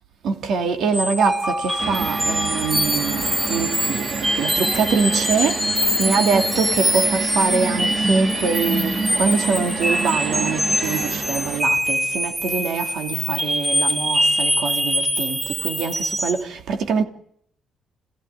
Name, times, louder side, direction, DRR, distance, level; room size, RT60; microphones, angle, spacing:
voice 1, 0.2-5.7 6.0-17.0, right 5 dB, 70° right, 2.8 m, -24 dB
sound 1, 0.9-16.4, equal, 5° right, 2.1 m, -23 dB
sound 2, 1.8-11.6, right 4 dB, 50° right, 2.4 m, -29 dB
28.0 x 15.5 x 9.8 m
cardioid pair, 90°, 0 cm